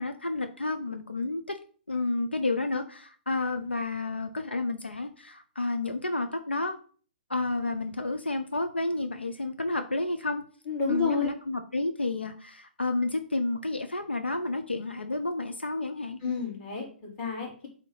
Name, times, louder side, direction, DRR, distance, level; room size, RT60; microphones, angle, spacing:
voice 1, 0.0-1.6 1.9-6.8 7.3-10.4 10.9-16.2, left 2 dB, 85° left, 7 dB, 0.7 m, -30 dB
voice 2, 10.7-11.3 16.2-17.7, left 5 dB, 30° left, -2 dB, 3.5 m, -30 dB
8.1 x 3.0 x 5.7 m, 0.42 s
figure-of-eight pair, 120°, 6 cm